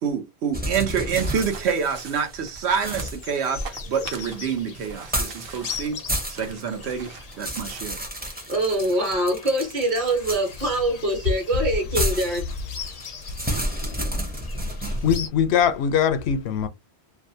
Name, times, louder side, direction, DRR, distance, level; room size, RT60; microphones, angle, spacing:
voice 1, 0.0-3.6 3.9-6.0 6.3-8.0, right 6 dB, 85° right, 1.0 m, -27 dB
sound 1, 0.5-2.3 2.8-4.3 5.0-5.5 5.8-6.6 7.0-10.8 11.9-15.2, equal, 10° right, 0.5 m, -31 dB
sound 2, 0.9-8.1, right 2 dB, 65° right, 0.9 m, -41 dB
sound 3, 2.5-15.3, left 7 dB, 50° left, 0.5 m, -41 dB
voice 2, 8.2-12.4, right 1 dB, 50° right, 1.1 m, -24 dB
voice 3, 15.0-16.7, left 8 dB, 80° left, 0.8 m, -21 dB
2.6 x 2.1 x 2.6 m
omnidirectional pair, 1.1 m